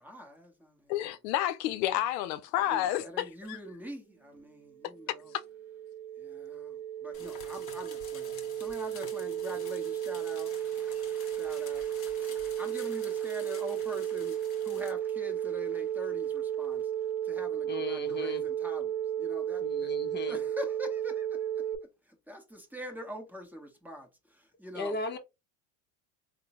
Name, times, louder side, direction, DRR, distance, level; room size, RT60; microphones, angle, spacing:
voice 1, 0.0-0.9 2.5-5.3 6.1-19.9 20.3-25.0, equal, 5° right, 0.9 m, -45 dB
voice 2, 0.9-3.6, left 13 dB, 85° left, 0.6 m, -30 dB
sound 1, 4.7-21.7, right 10 dB, 85° right, 0.6 m, -34 dB
sound 2, 7.1-14.9, left 5 dB, 40° left, 1.3 m, -50 dB
voice 3, 17.7-18.4 19.6-20.4 24.7-25.2, left 2 dB, 20° left, 0.7 m, -36 dB
3.5 x 2.1 x 2.8 m
supercardioid pair, 100°, 48 cm